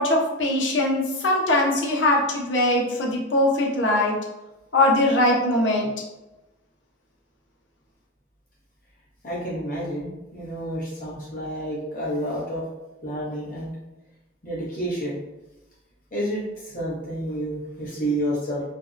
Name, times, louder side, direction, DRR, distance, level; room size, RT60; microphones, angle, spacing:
voice 1, 0.0-4.2 4.7-5.9, left 1 dB, 85° left, -1 dB, 0.6 m, -21 dB
voice 2, 9.2-12.6 13.0-13.7 14.4-15.2 16.1-18.7, right 1 dB, 45° left, -7 dB, 0.8 m, -29 dB
2.5 x 2.1 x 2.4 m, 1.0 s
head